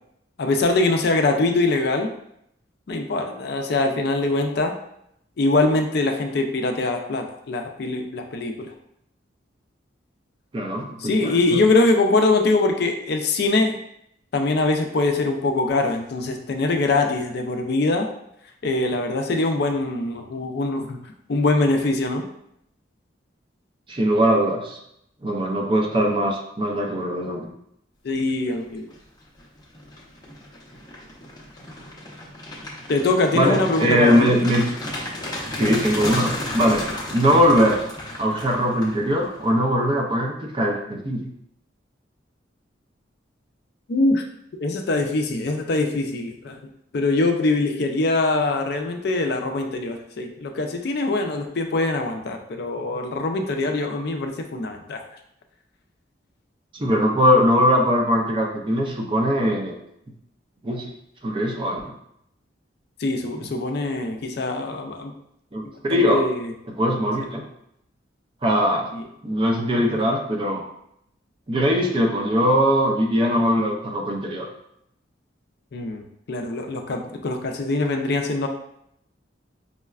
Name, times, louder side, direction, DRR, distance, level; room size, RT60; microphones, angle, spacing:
voice 1, 0.4-2.1 2.9-4.7 5.4-8.7 11.0-13.8 14.3-18.1 18.6-21.0 21.3-22.2 28.0-28.9 32.9-34.3 43.9-44.2 44.6-46.6 46.9-55.0 63.0-65.1 65.9-66.5 68.9-69.0 75.7-76.0 76.3-78.5, left 2 dB, 55° left, 4 dB, 0.4 m, -23 dB
voice 2, 10.5-11.6 23.9-24.8 25.2-27.5 33.3-34.6 35.6-37.8 38.2-41.3 56.7-59.8 60.6-60.9 61.2-61.9 63.4-63.5 65.5-66.2 66.7-67.4 68.4-68.9 69.2-70.6 71.5-74.5, equal, 25° right, 1 dB, 0.5 m, -21 dB
sound 1, 28.6-29.0 29.4-39.5, left 1 dB, 20° left, 0.7 m, -33 dB
5.4 x 2.2 x 2.3 m, 0.76 s
head